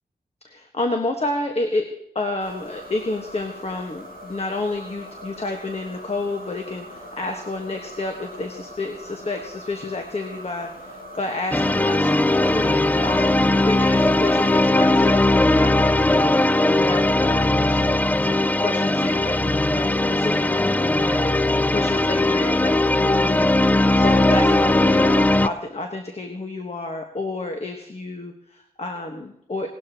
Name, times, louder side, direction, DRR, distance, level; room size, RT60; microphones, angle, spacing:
voice 1, 0.4-1.9 2.1-29.7, left 2 dB, 45° left, 4 dB, 1.3 m, -30 dB
sound 1, 2.4-14.7, equal, 70° left, 2.6 m, -41 dB
sound 2, 11.5-25.5, left 2 dB, 10° left, 0.4 m, -19 dB
18.5 x 12.5 x 2.9 m, 0.74 s
wide cardioid pair, 85°, 15 cm